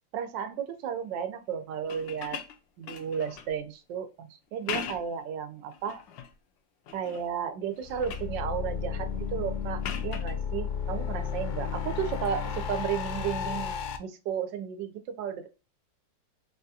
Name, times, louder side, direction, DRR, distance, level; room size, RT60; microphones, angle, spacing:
voice 1, 0.1-2.4 2.8-6.0 6.9-15.5, right 8 dB, 85° right, 9 dB, 1.3 m, -34 dB
sound 1, 1.8-3.6 4.5-5.2 5.7-6.3 6.9-7.3 7.6-8.4 9.8-10.4 12.1-12.3, left 7 dB, 90° left, 1.3 m, -40 dB
sound 2, 7.8-14.0, left 7 dB, 70° left, 1.0 m, -33 dB
4.0 x 2.3 x 2.6 m, 0.30 s
omnidirectional pair, 2.0 m